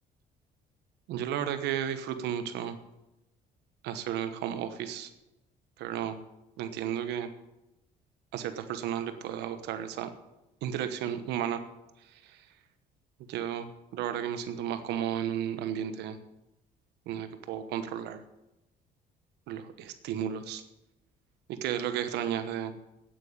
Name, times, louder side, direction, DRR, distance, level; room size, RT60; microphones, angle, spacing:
voice 1, 1.1-2.8 3.8-5.1 5.8-6.2 6.6-7.3 8.3-10.1 10.6-11.6 12.2-12.3 13.3-16.2 17.1-18.2 19.5-20.6 21.5-22.7, right 9 dB, 85° right, 10 dB, 1.1 m, -33 dB
9.1 x 8.9 x 8.7 m, 0.94 s
cardioid pair, 110°, 17 cm